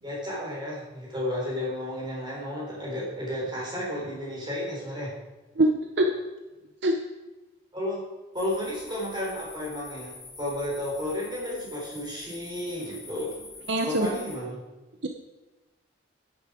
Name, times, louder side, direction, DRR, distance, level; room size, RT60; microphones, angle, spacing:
voice 1, 0.0-5.1 7.7-8.0 8.3-13.4 13.8-14.6, left 1 dB, 20° right, -4 dB, 4.1 m, -32 dB
voice 2, 5.6-6.1 6.8-7.0 13.7-14.1 15.0-15.1, right 1 dB, 60° right, 4 dB, 0.8 m, -23 dB
sound 1, 8.3-14.4, left 3 dB, 25° left, 4.1 m, -46 dB
10.5 x 10.0 x 4.9 m, 1.1 s
head